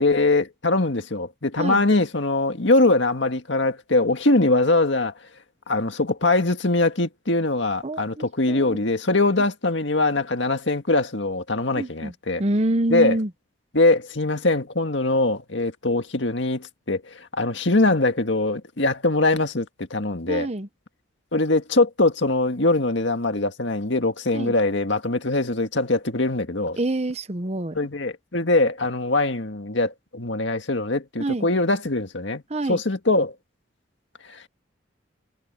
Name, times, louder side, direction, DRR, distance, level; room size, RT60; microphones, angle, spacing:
voice 1, 0.0-5.1 5.7-12.4 12.9-13.2 13.7-20.5 21.3-26.8 27.7-32.4 32.7-33.3 34.3-34.5, left 2 dB, 65° left, 1.9 m, -22 dB
voice 2, 7.8-8.8 11.8-12.1 12.4-13.3 20.3-20.7 24.3-24.5 26.8-27.8 31.2-31.5 32.5-32.8, right 1 dB, 35° right, 1.0 m, -26 dB
head